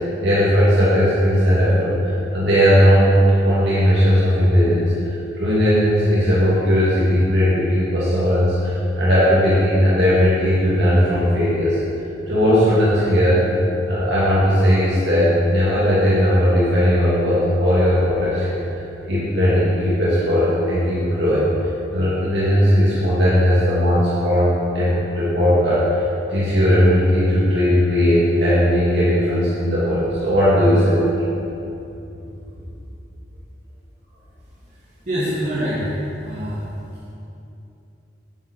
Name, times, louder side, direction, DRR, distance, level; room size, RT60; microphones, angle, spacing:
voice 1, 0.2-3.1 3.4-11.8 12.3-13.6 13.9-18.6 19.1-21.5 21.9-26.0 26.3-31.1, equal, 75° right, -9 dB, 2.1 m, -17 dB
voice 2, 34.8-35.9 36.2-36.6, equal, 45° right, -10 dB, 1.7 m, -25 dB
8.3 x 8.2 x 4.6 m, 2.8 s
head